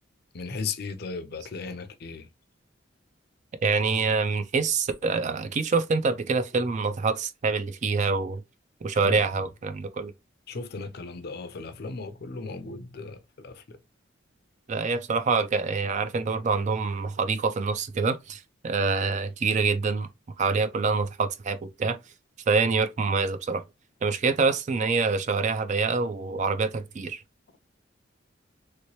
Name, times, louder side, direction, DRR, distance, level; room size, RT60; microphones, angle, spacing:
voice 1, 0.3-2.3 8.9-9.5 10.5-13.8, left 4 dB, 55° left, 0.5 m, -36 dB
voice 2, 3.6-8.4 8.8-10.1 14.7-20.1 20.4-22.0 22.5-23.6 24.0-27.2, right 4 dB, 40° right, 0.4 m, -26 dB
3.1 x 2.9 x 3.0 m
head